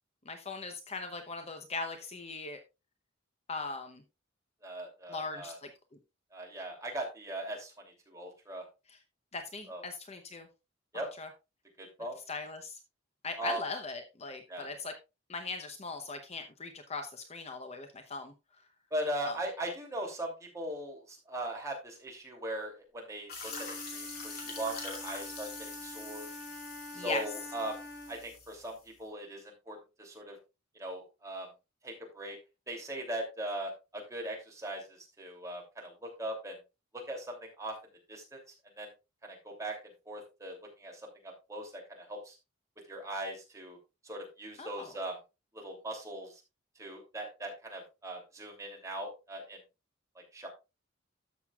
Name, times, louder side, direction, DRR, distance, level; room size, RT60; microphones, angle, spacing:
voice 1, 0.2-2.6 3.5-4.0 5.1-5.7 8.9-9.0 9.3-10.5 10.9-11.3 12.3-12.8 13.2-14.9 15.3-18.3 19.2-19.4 26.3-26.5 26.9-27.2 44.6-44.9, left 3 dB, 35° left, 6 dB, 0.8 m, -39 dB
voice 2, 4.6-5.6 6.3-8.6 9.7-9.8 10.9-11.1 11.8-12.2 13.4-13.6 14.5-14.7 18.9-26.3 26.9-27.8 28.1-30.4 30.7-31.5 31.8-32.4 32.7-36.6 36.9-37.8 38.1-38.4 38.8-38.9 39.2-39.8 40.1-42.4 42.9-43.8 44.0-45.2 45.5-46.4 46.8-49.6 50.1-50.5, right 1 dB, 15° right, 0 dB, 2.8 m, -40 dB
sound 1, 23.3-28.9, left 4 dB, 55° left, 2.6 m, -44 dB
Wind instrument woodwind instrument, 23.5-28.3, left 1 dB, 10° left, 1.7 m, -46 dB
13.0 x 6.5 x 2.4 m, 0.26 s
head